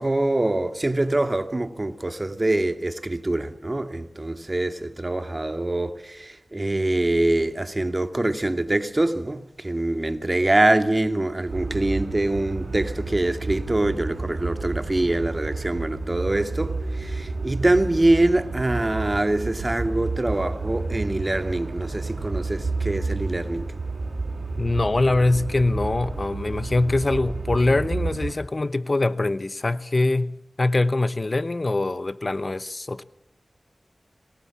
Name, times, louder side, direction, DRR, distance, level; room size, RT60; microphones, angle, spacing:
voice 1, 0.0-23.7, right 2 dB, 35° right, 2.4 m, -24 dB
sound 1, 11.5-28.3, right 3 dB, 80° right, 5.4 m, -31 dB
voice 2, 24.6-33.0, left 2 dB, 45° left, 0.9 m, -23 dB
26.5 x 21.0 x 7.3 m
cardioid pair, 45°, 0 cm